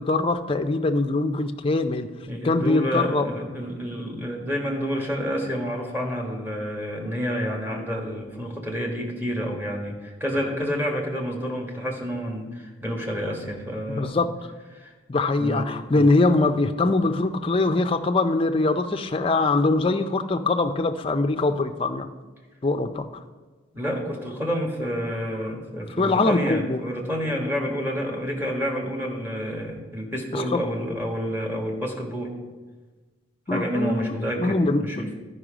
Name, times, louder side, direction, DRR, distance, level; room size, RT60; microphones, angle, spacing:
voice 1, 0.0-2.1 2.4-3.3 13.9-14.3 15.1-22.1 22.6-23.1 26.0-26.8 30.3-30.6 33.5-35.1, left 2 dB, 30° left, 7 dB, 0.4 m, -23 dB
voice 2, 2.3-14.2 14.7-14.9 15.4-15.7 15.9-16.1 23.7-32.3 33.5-35.1, equal, 10° right, 0 dB, 1.4 m, -29 dB
12.5 x 5.4 x 5.0 m, 1.3 s
head